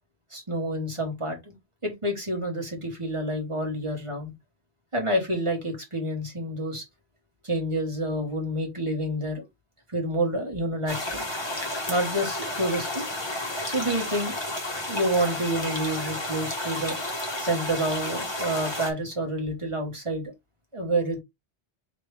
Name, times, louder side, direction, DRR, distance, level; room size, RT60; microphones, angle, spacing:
voice 1, 0.3-1.5 1.8-4.3 4.9-6.8 7.4-9.4 9.9-11.3 11.9-13.1 13.7-14.4 14.9-17.0 17.4-20.3 20.7-21.2, right 1 dB, 30° right, 1.5 m, -28 dB
sound 1, 10.9-18.9, left 1 dB, 25° left, 1.0 m, -32 dB
4.8 x 3.0 x 3.3 m
omnidirectional pair, 1.1 m